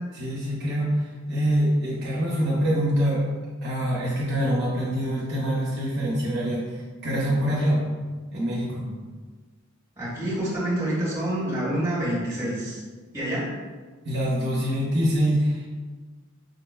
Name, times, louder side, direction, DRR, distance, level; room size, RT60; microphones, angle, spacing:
voice 1, 0.2-3.2 3.6-6.6 7.0-7.8 8.3-8.8 14.1-15.7, equal, 55° right, -5 dB, 0.6 m, -24 dB
voice 2, 10.0-12.8 13.1-13.5, right 1 dB, 15° right, -8 dB, 1.2 m, -27 dB
4.8 x 2.1 x 2.2 m, 1.4 s
head